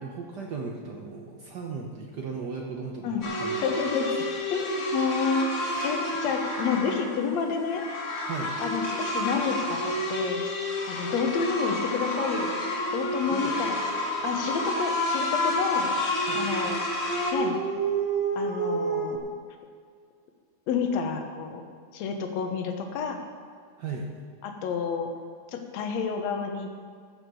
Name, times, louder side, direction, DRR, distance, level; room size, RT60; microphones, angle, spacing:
voice 1, 0.0-3.7 4.1-4.3 5.7-5.9 8.3-8.5 13.3-13.5 16.2-16.4 16.7-16.9 23.8-24.1, right 4 dB, 90° right, 0 dB, 0.9 m, -37 dB
sound 1, 3.2-17.3, left 1 dB, 50° left, 2.6 m, -30 dB
voice 2, 3.6-4.2 4.5-5.5 5.8-7.9 8.6-10.4 10.9-12.5 12.9-13.8 14.2-15.9 16.4-16.8 17.3-17.6 18.4-19.2 20.7-21.6 21.9-23.2 24.4-25.1 25.5-26.7, left 6 dB, 70° left, 5 dB, 2.2 m, -29 dB
Dog, 15.7-19.2, right 5 dB, 60° right, 0.9 m, -30 dB
14.5 x 6.6 x 6.9 m, 2.1 s
omnidirectional pair, 3.4 m